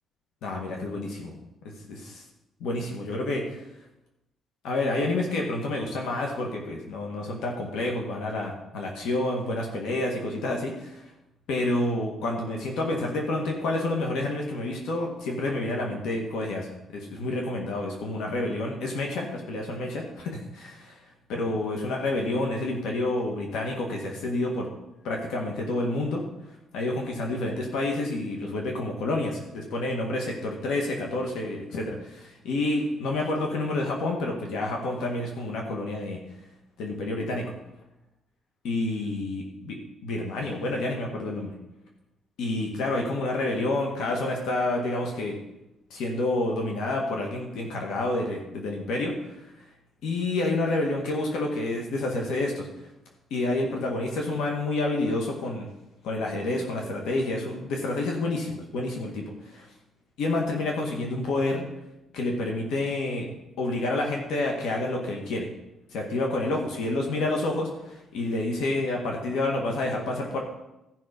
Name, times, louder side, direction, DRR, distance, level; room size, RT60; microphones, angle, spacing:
voice 1, 0.4-1.3 1.9-2.2 2.6-3.6 4.6-11.0 11.5-16.7 16.9-21.0 21.3-24.7 25.0-26.2 26.7-36.2 36.8-37.5 38.6-39.8 40.0-41.5 42.4-45.3 45.9-49.1 50.0-52.7 53.3-55.7 56.0-59.7 60.2-61.6 62.1-63.3 63.6-65.5 65.9-70.4, left 2 dB, 90° left, 0 dB, 1.8 m, -29 dB
14.5 x 5.7 x 5.3 m, 0.92 s
cardioid pair, 120°, 0 cm